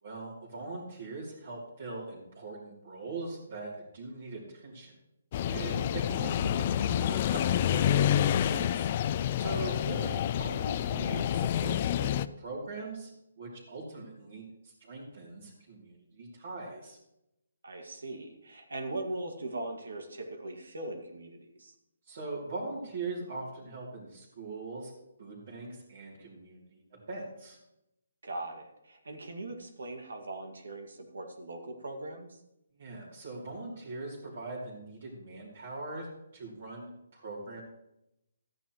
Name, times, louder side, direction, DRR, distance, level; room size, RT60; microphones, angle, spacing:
voice 1, 0.0-4.9 5.4-8.9 9.4-13.1 13.4-17.0 22.1-24.9 25.2-27.6 32.7-37.6, right 2 dB, 50° right, -6 dB, 3.0 m, -41 dB
sound 1, 5.3-12.3, left 10 dB, 35° left, 0.3 m, -28 dB
voice 2, 5.5-5.9 9.4-9.8 17.6-21.7 28.2-32.4, right 2 dB, 90° right, 4 dB, 2.0 m, -40 dB
14.0 x 9.6 x 3.1 m, 0.85 s
hypercardioid pair, 160°, 0 cm